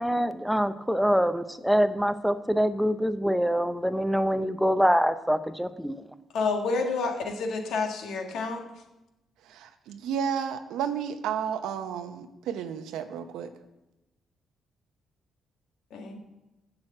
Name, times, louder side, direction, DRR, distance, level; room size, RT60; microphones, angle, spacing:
voice 1, 0.0-6.1, equal, ahead, 11 dB, 0.5 m, -25 dB
voice 2, 6.3-8.6 15.9-16.2, left 4 dB, 75° left, 4 dB, 1.6 m, -29 dB
voice 3, 9.5-13.5, right 8 dB, 90° right, 9 dB, 0.7 m, -32 dB
7.4 x 6.4 x 7.5 m, 0.96 s
cardioid pair, 90°, 0 cm